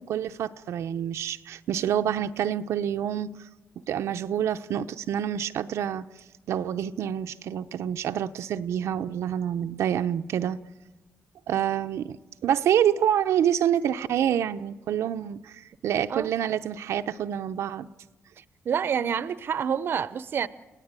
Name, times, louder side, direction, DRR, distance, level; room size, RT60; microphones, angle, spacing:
voice 1, 0.0-3.3 3.9-6.0 6.5-10.6 11.5-12.2 12.4-17.9, right 9 dB, 90° right, 0.7 m, -27 dB
voice 2, 18.4-20.5, right 7 dB, 50° right, 0.7 m, -28 dB
29.5 x 17.5 x 9.0 m
wide cardioid pair, 150°, 5 cm